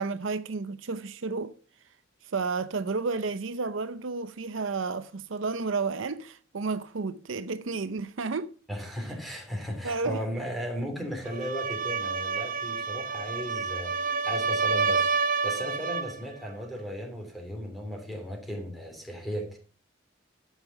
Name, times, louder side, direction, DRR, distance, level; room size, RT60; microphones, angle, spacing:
voice 1, 0.0-1.5 2.2-8.5 9.8-10.2, right 4 dB, 75° right, 0.6 m, -31 dB
voice 2, 8.7-19.6, equal, ahead, 3.1 m, -36 dB
sound 1, 11.2-16.2, right 5 dB, 45° right, 0.8 m, -29 dB
13.0 x 5.7 x 5.7 m
head